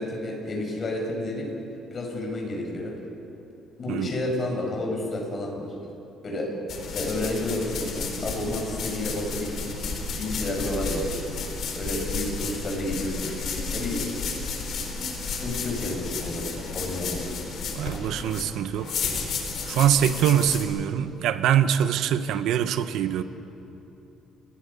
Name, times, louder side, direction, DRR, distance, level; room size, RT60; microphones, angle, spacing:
voice 1, 0.0-1.5 1.9-2.9 3.8-5.7 6.2-6.5 6.9-11.1 11.8-13.4 13.7-14.0 15.2-16.5 16.7-17.4 17.9-18.1, left 1 dB, 35° left, 0 dB, 5.8 m, -30 dB
sound 1, 6.7-20.6, left 4 dB, 55° left, 4.0 m, -32 dB
voice 2, 17.7-18.9 19.7-23.2, right 10 dB, 75° right, 10 dB, 1.1 m, -23 dB
29.5 x 20.5 x 5.5 m, 2.9 s
cardioid pair, 135°, 0 cm